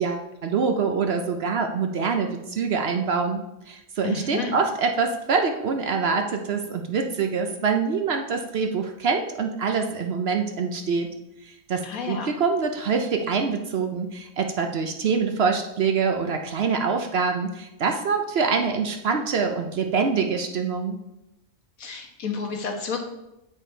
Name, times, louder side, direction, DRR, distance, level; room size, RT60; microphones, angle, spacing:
voice 1, 0.0-11.1 11.4-21.0, right 5 dB, 60° right, 5 dB, 0.8 m, -25 dB
voice 2, 4.0-4.5 11.8-12.3 21.8-23.0, left 5 dB, 80° left, 2 dB, 1.6 m, -30 dB
8.2 x 4.9 x 4.4 m, 0.92 s
omnidirectional pair, 1.4 m